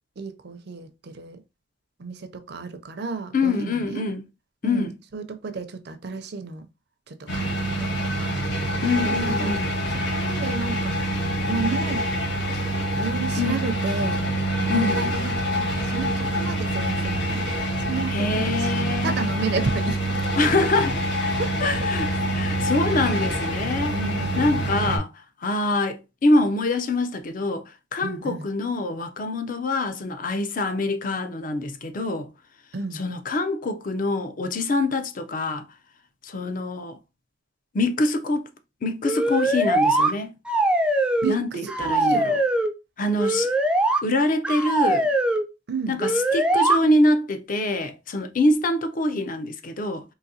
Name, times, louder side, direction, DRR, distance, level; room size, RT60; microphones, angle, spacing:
voice 1, 0.2-1.4 2.0-4.0 4.6-6.7 7.1-8.5 9.1-9.5 10.1-11.0 11.5-12.1 12.9-17.4 17.8-20.2 21.3-21.7 23.9-24.6 28.0-28.5 32.7-33.0 41.2-42.3 45.7-46.0, right 4 dB, 60° right, 0.5 m, -32 dB
voice 2, 3.3-4.2 4.6-4.9 8.8-9.7 13.4-13.6 14.7-15.0 18.1-19.2 20.4-21.3 21.6-22.1 22.3-24.0 24.4-25.1 25.4-27.6 27.9-32.3 33.0-35.6 36.2-37.0 37.7-38.5 38.8-40.4 41.3-42.4 43.0-43.5 44.0-45.1 45.9-50.0, left 2 dB, 45° left, 0.5 m, -25 dB
sound 1, 7.3-25.0, right 1 dB, 75° left, 1.1 m, -26 dB
sound 2, 39.0-40.1 40.5-41.4 41.7-42.7 43.2-44.0 44.4-45.4 46.0-46.8, right 1 dB, 5° right, 0.3 m, -21 dB
3.9 x 2.7 x 2.7 m
head